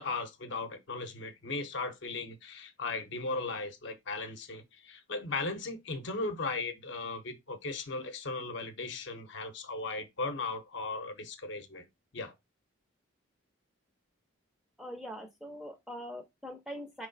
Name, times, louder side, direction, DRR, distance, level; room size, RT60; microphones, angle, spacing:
voice 1, 0.0-11.9 12.1-12.3, left 3 dB, 60° left, 0.7 m, -37 dB
voice 2, 14.8-17.1, equal, ahead, 0.5 m, -42 dB
4.4 x 3.1 x 3.9 m
head